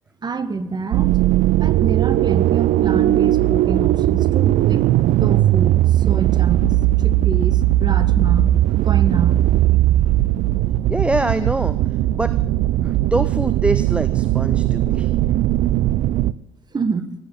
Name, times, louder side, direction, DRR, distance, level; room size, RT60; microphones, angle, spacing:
voice 1, 0.2-1.1 1.6-4.8 5.2-6.7 7.0-8.5 8.8-9.4 16.7-17.1, right 4 dB, 30° right, 12 dB, 1.4 m, -26 dB
sound 1, 0.9-16.3, right 14 dB, 55° right, 0.5 m, -18 dB
voice 2, 10.9-11.8 12.1-12.3 12.8-15.1, right 1 dB, 5° right, 13 dB, 0.7 m, -24 dB
17.5 x 9.3 x 8.0 m, 0.90 s
figure-of-eight pair, 50°, 15 cm